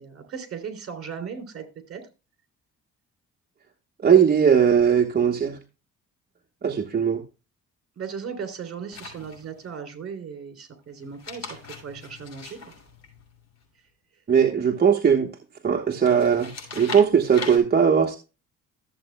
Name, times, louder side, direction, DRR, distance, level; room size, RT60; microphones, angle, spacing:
voice 1, 0.0-2.0 8.0-11.6 11.8-12.6, right 6 dB, 50° right, 6 dB, 3.0 m, -37 dB
voice 2, 4.0-5.6 6.6-7.2 14.3-15.3 15.6-18.2, right 7 dB, 30° right, 3 dB, 1.1 m, -19 dB
sound 1, 8.9-9.7 11.0-13.6 16.0-17.6, left 4 dB, 60° left, 5.7 m, -39 dB
14.0 x 7.7 x 2.2 m, 0.30 s
cardioid pair, 90°, 30 cm